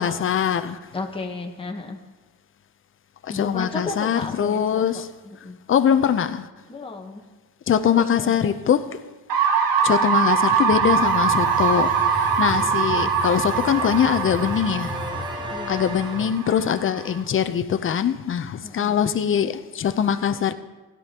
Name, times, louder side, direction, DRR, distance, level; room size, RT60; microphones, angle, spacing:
voice 1, 0.0-0.8 3.2-5.1 5.7-6.5 7.7-9.0 9.8-15.0 15.7-20.5, left 8 dB, 30° left, 0.6 m, -22 dB
voice 2, 0.9-2.0 3.3-5.6 6.7-7.2 8.0-8.6 12.9-13.2 15.5-15.9 18.6-19.0, left 3 dB, 15° left, 1.1 m, -34 dB
sound 1, 9.3-17.2, right 6 dB, 60° right, 1.3 m, -23 dB
sound 2, 10.7-16.3, left 1 dB, 10° right, 1.2 m, -34 dB
16.5 x 11.0 x 2.9 m
cardioid pair, 105°, 40 cm